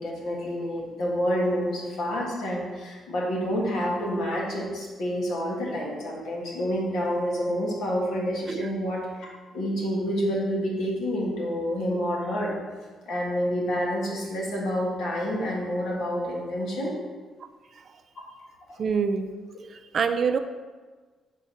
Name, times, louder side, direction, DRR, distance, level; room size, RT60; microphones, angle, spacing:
voice 1, 0.0-9.3 9.5-12.6 13.0-16.9 18.7-18.8, equal, 80° left, -3 dB, 1.6 m, -28 dB
voice 2, 18.8-19.3 19.7-20.4, right 6 dB, 50° right, 8 dB, 0.4 m, -25 dB
4.6 x 4.6 x 5.6 m, 1.4 s
cardioid pair, 90°, 0 cm